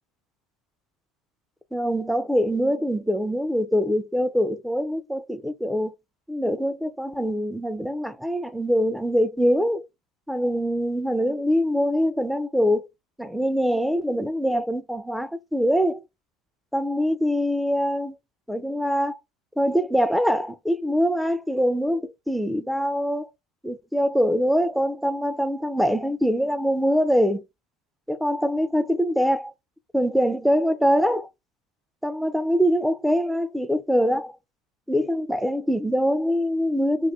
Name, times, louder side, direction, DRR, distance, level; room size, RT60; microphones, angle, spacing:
voice 1, 1.7-5.9 6.3-9.9 10.3-12.8 13.2-16.0 16.7-18.2 18.5-19.2 19.6-23.3 23.6-27.4 28.1-29.5 29.9-31.3 32.0-34.4 34.9-37.1, equal, ahead, 0.4 m, -23 dB
2.5 x 2.3 x 3.5 m
supercardioid pair, 90°, 0 cm